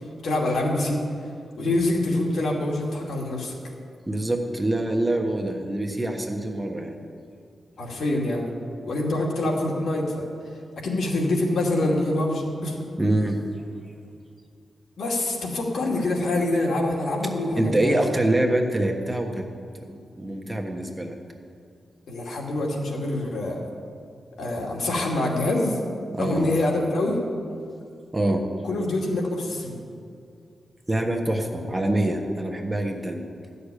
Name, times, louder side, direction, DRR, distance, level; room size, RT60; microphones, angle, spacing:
voice 1, 0.2-1.0 1.6-3.5 7.8-8.5 8.8-10.3 10.8-12.8 15.0-18.0 22.1-23.7 24.4-25.8 26.2-27.2 28.6-29.8, left 2 dB, 75° left, -1 dB, 2.5 m, -25 dB
voice 2, 4.1-7.0 13.0-13.4 17.6-19.4 19.9-21.2 26.1-26.5 28.1-28.4 30.9-33.2, right 1 dB, 15° right, 2 dB, 1.3 m, -25 dB
14.0 x 6.7 x 10.0 m, 2.4 s
wide cardioid pair, 125°, 0 cm